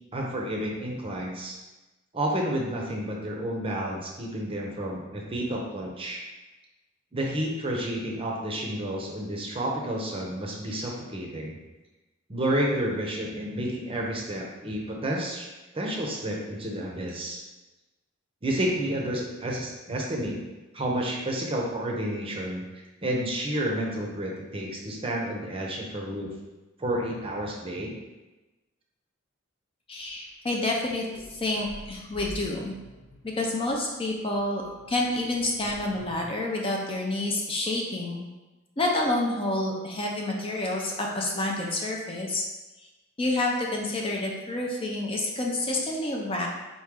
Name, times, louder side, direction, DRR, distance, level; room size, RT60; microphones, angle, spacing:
voice 1, 0.1-1.5 2.1-6.2 7.1-11.6 12.3-15.5 15.7-17.4 18.4-20.4 20.7-22.6 23.0-26.3 26.8-27.9, right 1 dB, 25° right, -1 dB, 0.7 m, -30 dB
voice 2, 29.9-31.0 31.3-32.8 33.2-34.6 34.9-38.2 38.8-42.4 43.2-46.5, left 2 dB, 25° left, -1 dB, 0.5 m, -28 dB
sound 1, 30.0-30.1 30.6-36.2, equal, 85° left, 0.9 m, -47 dB
4.2 x 3.1 x 3.6 m, 1.1 s
head